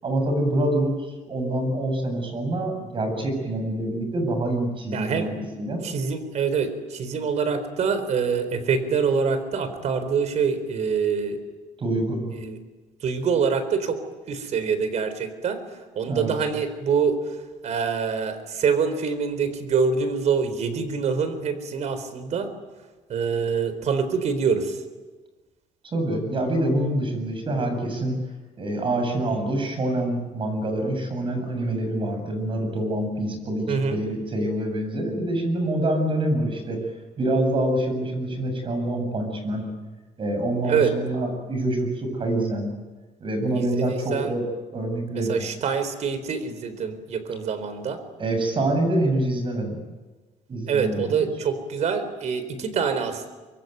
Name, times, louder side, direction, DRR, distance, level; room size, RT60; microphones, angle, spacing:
voice 1, 0.0-5.3 5.6-5.8 11.8-12.2 16.0-16.3 25.9-28.2 28.6-36.8 37.2-39.6 40.2-42.7 43.2-44.4 44.7-45.4 48.2-49.8 50.5-51.3, right 1 dB, 35° right, 6 dB, 7.8 m, -26 dB
voice 2, 4.9-5.3 5.8-11.4 12.3-12.6 13.0-14.0 14.3-15.6 16.0-17.2 17.6-22.5 23.1-24.8 33.7-34.0 40.7-40.9 43.6-44.3 45.3-48.0 50.7-53.3, right 6 dB, 55° right, 11 dB, 4.1 m, -25 dB
25.0 x 23.5 x 9.5 m, 1.3 s
cardioid pair, 135°, 14 cm